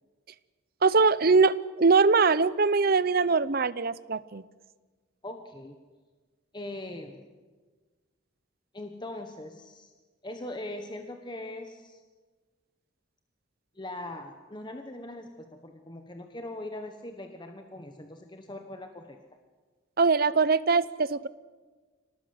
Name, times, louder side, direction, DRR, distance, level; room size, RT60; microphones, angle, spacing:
voice 1, 0.8-4.4 20.0-21.3, right 4 dB, 50° right, 17 dB, 0.7 m, -22 dB
voice 2, 5.2-5.8 6.5-7.2 8.7-9.9 10.2-12.0 13.7-19.2, left 1 dB, 20° left, 5 dB, 1.3 m, -41 dB
26.0 x 18.5 x 7.9 m, 1.4 s
head